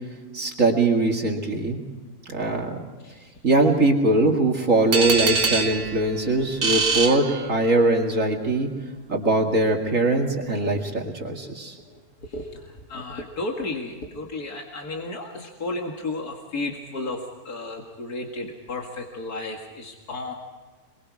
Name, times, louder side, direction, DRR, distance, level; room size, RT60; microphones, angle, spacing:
voice 1, 0.3-1.8 2.3-2.8 3.4-8.7 9.1-11.7, right 2 dB, 60° right, 2 dB, 2.6 m, -21 dB
sound 1, 4.9-8.0, right 4 dB, 85° right, 2.1 m, -25 dB
voice 2, 12.9-17.2 17.5-20.3, left 2 dB, 85° left, 1 dB, 2.5 m, -33 dB
27.5 x 22.0 x 4.8 m, 1.3 s
omnidirectional pair, 1.6 m